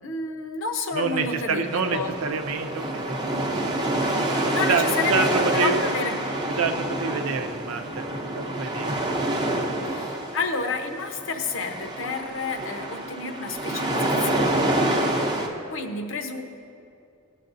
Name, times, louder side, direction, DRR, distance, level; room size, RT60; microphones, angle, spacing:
voice 1, 0.0-2.1 4.1-6.2 9.9-14.7 15.7-16.4, left 4 dB, 65° left, 5 dB, 0.8 m, -30 dB
voice 2, 0.9-3.2 4.7-5.8 6.5-8.0 8.3-9.1 9.5-9.7 15.0-15.5, right 4 dB, 85° right, 5 dB, 0.7 m, -27 dB
sound 1, 1.6-15.5, right 1 dB, 20° right, 0.7 m, -27 dB
17.5 x 7.5 x 2.6 m, 2.6 s
head